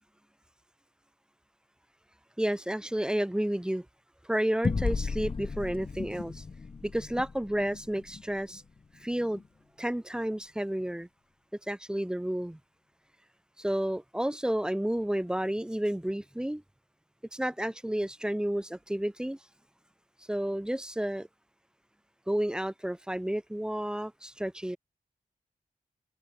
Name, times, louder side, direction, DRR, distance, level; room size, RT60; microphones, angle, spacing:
voice 1, 2.4-3.9 4.2-6.4 6.8-8.6 9.0-9.4 9.8-11.1 11.7-12.6 13.6-16.6 17.3-19.4 20.3-21.3 22.3-24.8, right 1 dB, 5° right, 4.0 m, -31 dB
sound 1, 4.6-9.5, left 4 dB, 40° left, 3.8 m, -35 dB
open air
wide cardioid pair, 170°, 14 cm